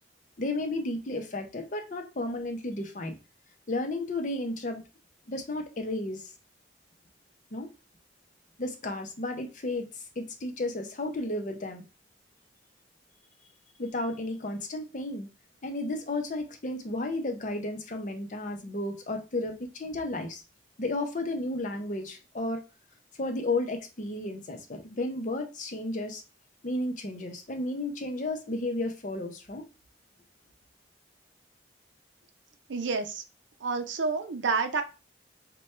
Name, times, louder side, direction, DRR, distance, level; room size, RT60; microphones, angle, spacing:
voice 1, 0.4-3.2 3.7-4.8 5.3-6.2 7.5-7.7 8.6-11.8 13.8-15.3 15.6-20.4 20.8-22.6 23.2-26.2 26.6-29.6, left 2 dB, 40° left, 0.6 m, -33 dB
voice 2, 32.7-33.2 33.6-34.8, right 4 dB, 75° right, 0.5 m, -29 dB
3.2 x 2.2 x 4.3 m
head